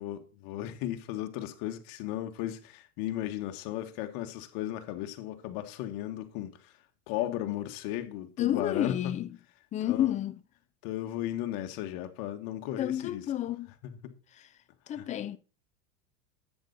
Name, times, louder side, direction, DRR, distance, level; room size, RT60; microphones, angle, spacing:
voice 1, 0.0-6.7 7.1-9.0 9.8-10.1 10.8-13.2 13.8-14.1 15.0-15.1, left 13 dB, 50° left, 1.8 m, -35 dB
voice 2, 8.4-9.4 9.7-10.4 12.8-13.7 14.3-14.5 14.9-15.4, left 11 dB, 20° left, 0.4 m, -30 dB
10.5 x 8.6 x 4.2 m
supercardioid pair, 130°, 44 cm